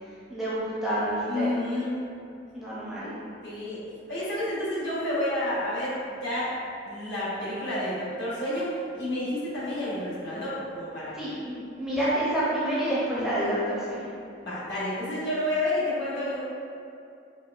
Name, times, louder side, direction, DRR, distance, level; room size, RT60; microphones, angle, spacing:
voice 1, 0.3-1.6 2.5-3.1 9.9-10.0 11.1-14.1, right 1 dB, ahead, -10 dB, 0.5 m, -28 dB
voice 2, 1.3-2.0 3.4-3.8 4.1-6.5 6.8-11.2 14.4-16.4, left 1 dB, 60° left, -9 dB, 1.2 m, -30 dB
4.4 x 2.4 x 2.4 m, 2.5 s
head